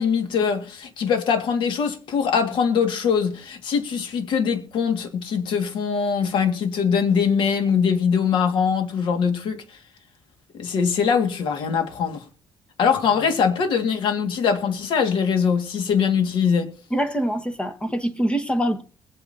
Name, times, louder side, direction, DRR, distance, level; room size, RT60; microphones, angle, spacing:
voice 1, 0.0-9.6 10.5-12.2 12.8-16.7, left 6 dB, 75° left, 1.9 m, -22 dB
voice 2, 16.9-18.8, equal, 10° left, 1.3 m, -24 dB
21.0 x 8.9 x 2.7 m
cardioid pair, 110°, 9 cm